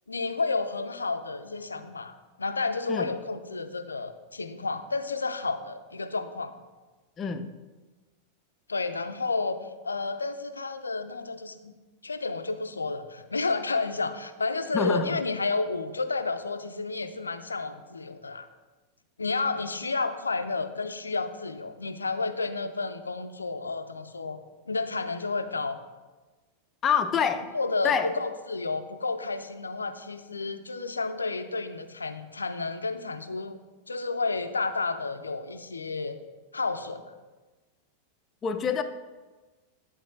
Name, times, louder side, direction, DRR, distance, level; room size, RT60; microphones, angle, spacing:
voice 1, 0.1-2.1 2.4-6.5 8.7-9.6 9.8-11.7 12.0-18.5 19.2-24.4 24.7-25.8 27.5-33.6 33.9-36.2 36.5-37.0, left 3 dB, 75° left, 9 dB, 0.4 m, -31 dB
voice 2, 7.2-7.5 14.7-15.2 26.8-27.5 27.8-28.1 38.4-38.8, left 6 dB, 25° left, 9 dB, 0.5 m, -26 dB
10.5 x 4.1 x 3.8 m, 1.3 s
figure-of-eight pair, 90°, 0 cm